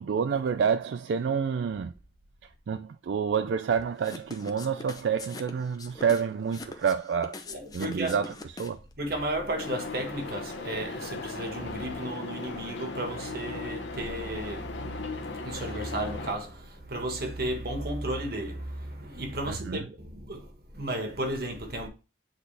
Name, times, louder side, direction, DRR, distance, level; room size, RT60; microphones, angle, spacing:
voice 1, 0.0-1.9 2.4-7.4 7.7-8.3 8.6-8.8 19.5-19.9, right 6 dB, 80° right, 0.3 m, -28 dB
sound 1, 4.0-8.9, left 3 dB, 20° left, 0.6 m, -42 dB
voice 2, 7.5-8.2 9.0-21.9, right 1 dB, 55° right, 1.5 m, -34 dB
sound 2, 9.6-16.3, left 3 dB, 85° left, 1.1 m, -37 dB
7.9 x 4.2 x 3.3 m
head